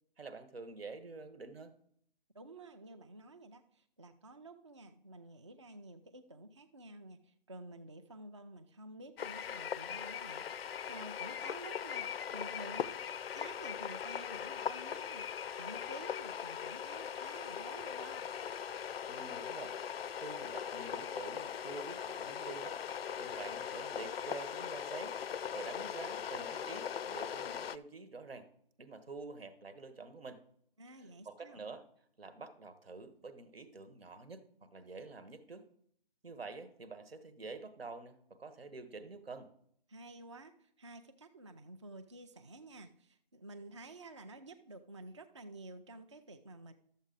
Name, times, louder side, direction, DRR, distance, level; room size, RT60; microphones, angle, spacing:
voice 1, 0.2-1.7 19.1-19.8 20.1-28.5 28.8-30.4 30.9-31.9 32.2-35.6 36.2-39.5, right 3 dB, 90° right, 11 dB, 1.3 m, -48 dB
voice 2, 2.3-13.0 13.3-18.3 30.8-31.6 39.9-46.7, right 2 dB, 30° right, 8 dB, 0.4 m, -51 dB
sound 1, 9.2-27.8, left 8 dB, 80° left, 0.5 m, -40 dB
12.5 x 7.2 x 3.9 m, 0.68 s
hypercardioid pair, 165°, 29 cm